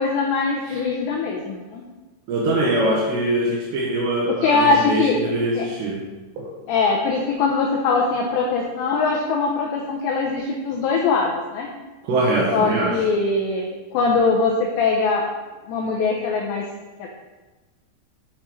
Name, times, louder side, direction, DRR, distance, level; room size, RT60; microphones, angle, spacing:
voice 1, 0.0-1.8 4.4-5.2 5.6-5.7 6.7-11.7 12.5-15.3 15.7-16.6 17.0-17.1, left 4 dB, 85° left, 0 dB, 2.5 m, -21 dB
voice 2, 2.3-6.0 6.4-6.5 12.0-13.0, right 1 dB, 75° right, -3 dB, 2.7 m, -23 dB
7.3 x 6.5 x 3.2 m, 1.2 s
omnidirectional pair, 5.9 m